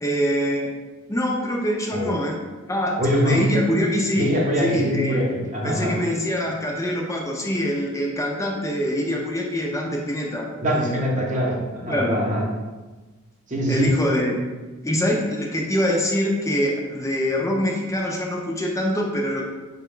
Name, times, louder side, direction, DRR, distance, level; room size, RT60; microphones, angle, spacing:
voice 1, 0.0-0.7 1.1-2.4 2.7-4.3 4.6-5.3 5.6-11.0 11.9-12.2 13.7-14.3 14.8-19.4, equal, 15° left, -1 dB, 0.5 m, -24 dB
voice 2, 3.0-3.5 4.2-6.0 10.6-12.5 13.5-13.9, equal, 35° right, -1 dB, 0.8 m, -23 dB
4.9 x 2.2 x 3.7 m, 1.2 s
head